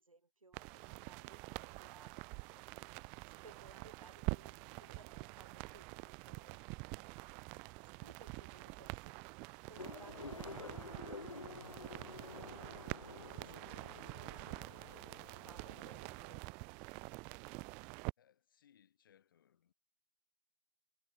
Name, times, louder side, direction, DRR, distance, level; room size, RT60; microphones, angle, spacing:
voice 1, 0.0-2.2 2.5-2.9 3.4-6.6 8.0-9.2 9.4-13.7 15.5-16.7, right 3 dB, 85° right, 7.2 m, -61 dB
sound 1, 0.5-18.1, right 32 dB, 5° right, 0.3 m, -47 dB
sound 2, 9.8-16.2, left 4 dB, 75° left, 5.3 m, -51 dB
voice 2, 18.2-19.7, left 9 dB, 40° left, 4.8 m, -69 dB
figure-of-eight pair, 150°, 17 cm